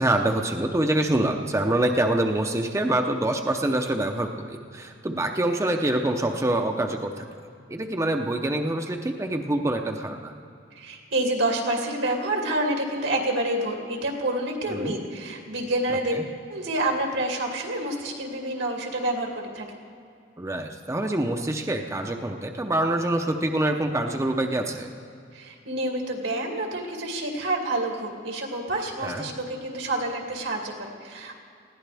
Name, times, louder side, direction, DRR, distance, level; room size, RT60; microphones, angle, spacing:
voice 1, 0.0-7.3 7.7-10.3 14.7-14.9 16.1-16.2 20.4-24.9 29.0-29.2, right 1 dB, 15° right, 3 dB, 0.7 m, -25 dB
voice 2, 10.7-16.2 16.5-19.7 25.3-31.3, right 1 dB, 85° right, 0 dB, 2.5 m, -28 dB
20.5 x 16.0 x 3.4 m, 2.4 s
head